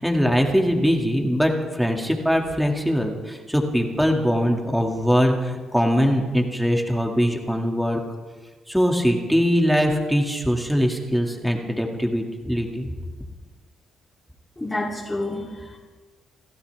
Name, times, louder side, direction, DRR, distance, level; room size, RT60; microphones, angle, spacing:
voice 1, 0.0-8.0 8.7-12.9, equal, ahead, 1 dB, 2.2 m, -22 dB
voice 2, 14.6-15.8, left 2 dB, 15° left, -6 dB, 3.0 m, -29 dB
29.5 x 13.0 x 3.5 m, 1.3 s
cardioid pair, 90°, 0 cm